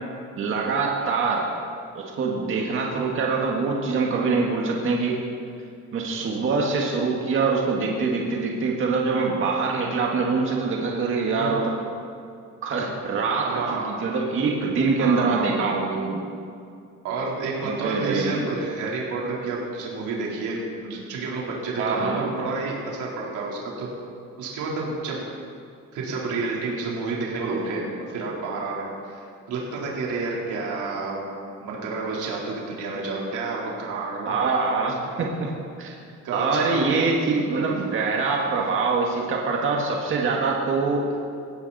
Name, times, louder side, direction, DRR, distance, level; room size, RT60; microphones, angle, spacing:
voice 1, 0.4-1.4 1.9-5.2 5.9-11.8 12.6-16.2 17.6-18.4 21.8-22.2 34.3-35.5 35.8-36.0 36.3-41.2, right 4 dB, 40° right, -1 dB, 1.9 m, -24 dB
voice 2, 13.4-13.9 15.0-15.5 17.0-23.9 24.4-25.3 25.9-31.2 31.6-34.3 36.2-37.0, right 3 dB, 70° right, -4 dB, 3.9 m, -30 dB
19.5 x 16.0 x 4.2 m, 2.4 s
cardioid pair, 175°, 31 cm